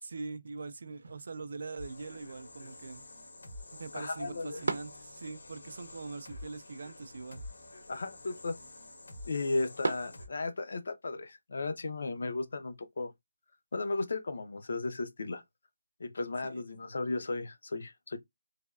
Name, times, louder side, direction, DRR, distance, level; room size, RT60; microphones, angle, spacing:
voice 1, 0.0-3.0 3.7-7.4 16.4-16.6, right 4 dB, 50° right, 0.3 m, -42 dB
sound 1, 0.9-10.9, right 3 dB, 75° right, 0.7 m, -44 dB
sound 2, 1.8-10.3, left 2 dB, 75° left, 1.2 m, -49 dB
voice 2, 3.9-4.6 7.9-8.6 9.2-13.1 13.7-15.4 16.0-18.2, left 3 dB, 55° left, 0.5 m, -35 dB
3.3 x 2.2 x 2.3 m
hypercardioid pair, 175°, 0 cm